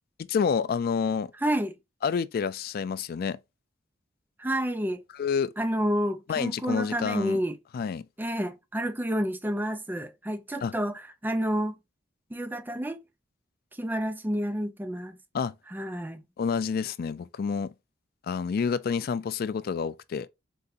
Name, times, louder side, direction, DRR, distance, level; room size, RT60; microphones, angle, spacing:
voice 1, 0.3-1.3 2.0-3.4 5.1-5.5 6.3-7.4 7.7-8.0 10.6-10.7 15.3-15.5 16.4-17.7 18.3-20.3, left 6 dB, 55° left, 0.3 m, -28 dB
voice 2, 1.4-1.8 4.4-5.0 5.6-7.6 8.2-10.9 11.2-11.7 12.3-13.0 13.8-15.2 15.7-16.2, equal, 10° right, 0.5 m, -29 dB
3.9 x 2.6 x 3.9 m
head